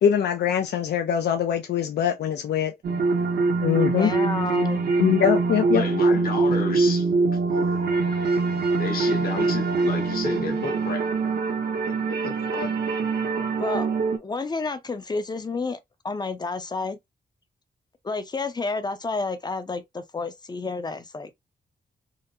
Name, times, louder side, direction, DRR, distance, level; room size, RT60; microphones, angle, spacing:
voice 1, 0.0-2.7 3.6-4.1 5.0-5.8, left 9 dB, 80° left, 0.4 m, -22 dB
sound 1, 2.8-14.2, right 4 dB, 85° right, 0.8 m, -24 dB
voice 2, 3.8-4.8 13.6-13.9 14.2-15.8 16.0-17.0 18.0-21.4, left 3 dB, 25° left, 0.4 m, -30 dB
voice 3, 5.7-7.1 7.6-7.8 8.8-11.1 11.9-12.7, left 5 dB, 60° left, 1.1 m, -32 dB
3.7 x 2.0 x 2.6 m
wide cardioid pair, 145°, 17 cm